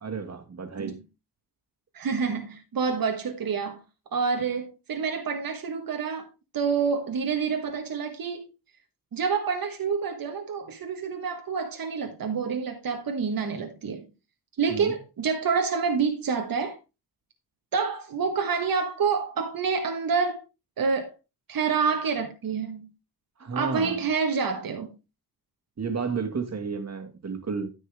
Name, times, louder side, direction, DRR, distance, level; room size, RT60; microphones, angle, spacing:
voice 1, 0.0-1.0 14.7-14.9 23.4-24.0 25.8-27.7, right 5 dB, 45° right, 2.0 m, -32 dB
voice 2, 1.9-3.8 4.1-6.3 6.5-8.5 9.1-14.0 14.6-16.8 17.7-20.4 20.8-21.1 21.5-22.9 23.5-24.9, right 5 dB, 65° right, 1.4 m, -27 dB
13.0 x 5.4 x 3.5 m
wide cardioid pair, 115°, 37 cm